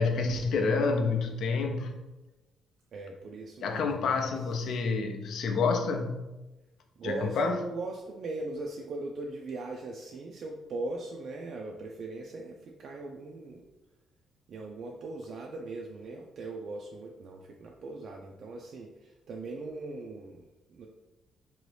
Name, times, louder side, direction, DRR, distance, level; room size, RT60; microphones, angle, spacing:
voice 1, 0.0-2.0 3.6-6.2 7.0-7.6, left 4 dB, 70° left, 4 dB, 0.4 m, -28 dB
voice 2, 2.9-4.8 7.0-13.6 14.5-20.9, right 2 dB, 60° right, 0 dB, 0.3 m, -40 dB
2.9 x 2.7 x 3.2 m, 1.1 s
cardioid pair, 90°, 0 cm